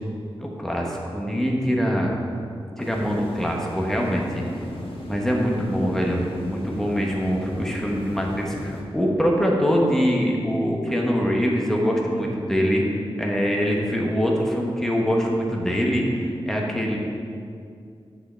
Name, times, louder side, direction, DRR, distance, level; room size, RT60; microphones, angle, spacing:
voice 1, 0.4-2.1 2.8-4.4 5.1-12.9 13.2-17.0, equal, 5° left, -2 dB, 1.2 m, -23 dB
sound 1, 2.8-8.8, left 1 dB, 60° left, 1.2 m, -36 dB
9.1 x 5.7 x 4.4 m, 2.4 s
wide cardioid pair, 100°, 10 cm